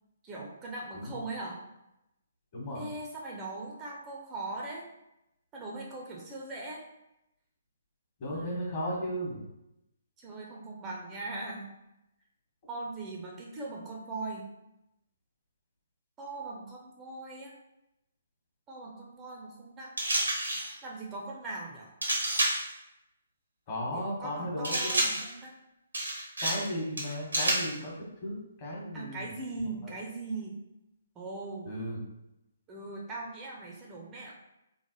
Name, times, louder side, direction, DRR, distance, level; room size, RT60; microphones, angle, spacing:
voice 1, 0.2-1.6 2.7-4.9 5.5-6.8 8.3-9.0 10.2-11.7 12.7-14.5 16.2-17.5 18.7-19.9 20.8-21.9 23.8-25.5 26.4-26.5 28.9-30.6 31.2-31.7 32.7-34.3, right 2 dB, 20° right, -2 dB, 0.5 m, -40 dB
voice 2, 8.2-9.4 23.7-25.0 26.4-27.9 28.2-29.3 29.8-29.9 31.6-32.0, equal, 35° left, -4 dB, 1.1 m, -35 dB
sound 1, 20.0-20.7 22.0-22.7 24.6-25.3 25.9-26.7 27.0-27.7, right 1 dB, 80° right, 0.8 m, -29 dB
3.1 x 2.0 x 2.9 m, 0.89 s
figure-of-eight pair, 135°, 0 cm